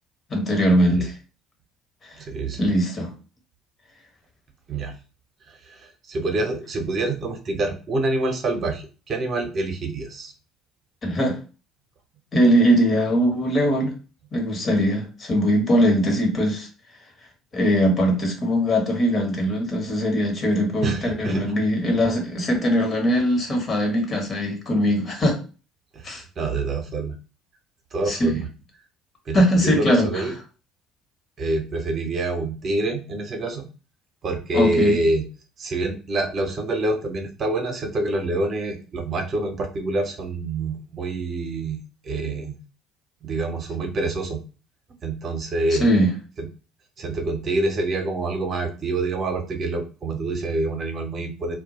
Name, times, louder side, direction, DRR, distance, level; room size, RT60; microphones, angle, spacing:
voice 1, 0.3-1.1 2.6-3.1 11.0-11.4 12.3-13.9 14.3-16.7 17.5-25.4 26.0-26.2 28.1-28.3 29.3-30.2 34.5-35.0 45.8-46.1, equal, 40° left, 1 dB, 1.0 m, -21 dB
voice 2, 2.2-2.7 4.7-4.9 5.5-10.3 20.8-21.4 25.9-26.1 26.4-27.1 27.9-28.5 29.3-30.3 31.4-33.7 34.2-35.2 35.6-42.6 43.2-44.4 45.0-45.9 46.4-46.5 47.0-51.6, right 2 dB, 45° right, 4 dB, 0.7 m, -26 dB
2.1 x 2.1 x 2.9 m, 0.35 s
hypercardioid pair, 60°, 0 cm